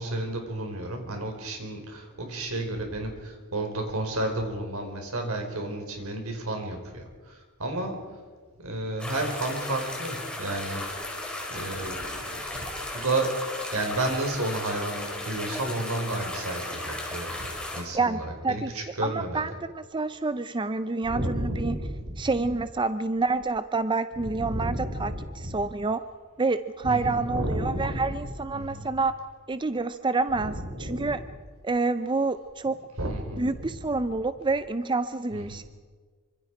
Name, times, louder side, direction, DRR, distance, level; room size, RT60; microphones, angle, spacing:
voice 1, 0.0-8.2 8.6-10.9 11.5-13.4 13.7-19.4 21.1-22.3 24.2-25.6 26.8-28.0 28.5-28.9 30.4-31.1 33.0-33.7 35.3-35.6, right 1 dB, 70° right, 3 dB, 4.7 m, -32 dB
sound 1, 9.0-17.8, left 1 dB, 5° left, 4.7 m, -35 dB
voice 2, 17.9-18.7 19.0-21.8 22.2-26.0 26.4-29.1 29.5-31.2 31.6-32.8 33.4-35.6, right 3 dB, 20° right, 11 dB, 0.6 m, -28 dB
26.5 x 25.5 x 4.9 m, 1.5 s
head